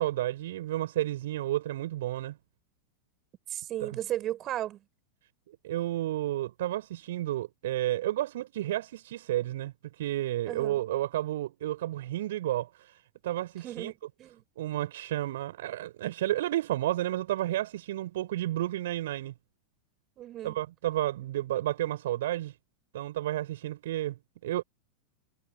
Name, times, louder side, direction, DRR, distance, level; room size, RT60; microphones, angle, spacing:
voice 1, 0.0-2.4 3.8-3.9 5.6-9.7 10.0-12.7 13.2-13.9 14.6-19.3 20.4-22.5 22.9-24.6, right 14 dB, 55° right, 5.3 m, -31 dB
voice 2, 3.5-4.8 10.5-10.8 13.6-14.4 20.2-20.6, right 13 dB, 30° right, 6.5 m, -35 dB
figure-of-eight pair, 90°, 0 cm